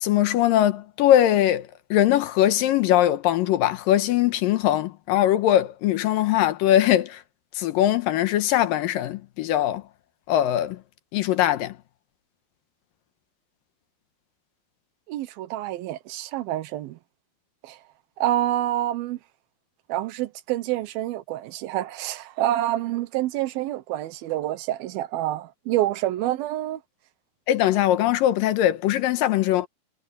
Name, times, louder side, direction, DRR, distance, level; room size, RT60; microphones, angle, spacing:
voice 1, 0.0-7.2 7.6-9.8 10.3-10.8 11.1-11.8 27.5-29.7, left 12 dB, 75° left, 2.4 m, -21 dB
voice 2, 15.1-17.0 17.6-17.8 18.2-19.2 19.9-26.8, right 14 dB, 80° right, 2.7 m, -27 dB
omnidirectional pair, 4.3 m